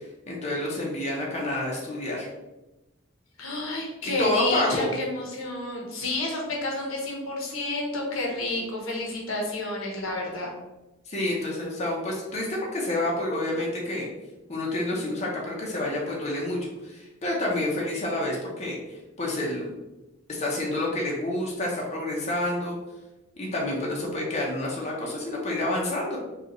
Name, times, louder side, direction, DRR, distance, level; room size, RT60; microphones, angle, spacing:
voice 1, 0.3-2.3 4.2-4.9 11.1-14.1 14.5-19.7 20.3-22.7 23.4-26.2, left 1 dB, 35° left, -3 dB, 0.8 m, -28 dB
voice 2, 3.4-10.5, left 2 dB, 85° left, 0 dB, 0.9 m, -30 dB
5.0 x 2.4 x 3.0 m, 1.0 s
head